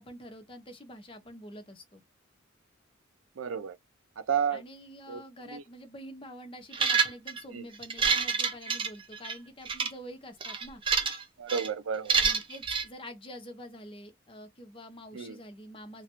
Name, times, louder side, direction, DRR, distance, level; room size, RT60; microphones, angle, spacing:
voice 1, 0.0-2.0 4.5-10.8 12.2-16.0, equal, 25° left, 0.8 m, -47 dB
voice 2, 3.4-3.8 4.3-4.6 5.1-5.2 5.5-5.6 7.5-7.6 11.4-12.2 15.1-15.4, right 7 dB, 80° right, 0.5 m, -31 dB
sound 1, 6.7-7.4 7.8-9.3 9.7-9.9 10.4-11.2 11.5-11.7 12.1-12.8, right 5 dB, 25° right, 0.5 m, -27 dB
3.0 x 2.4 x 2.9 m
head